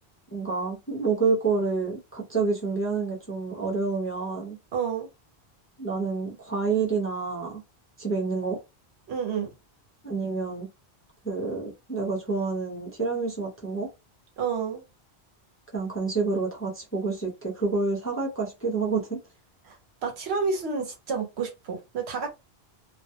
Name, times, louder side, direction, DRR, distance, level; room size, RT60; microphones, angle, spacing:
voice 1, 0.3-4.6 5.8-7.6 8.0-8.6 10.0-10.7 11.2-13.9 15.7-19.2, right 4 dB, 15° left, 0.5 m, -28 dB
voice 2, 4.7-5.1 9.1-9.5 14.4-14.8 19.6-19.8 20.0-22.3, right 5 dB, 80° right, 1.1 m, -29 dB
2.3 x 2.2 x 2.7 m
omnidirectional pair, 1.1 m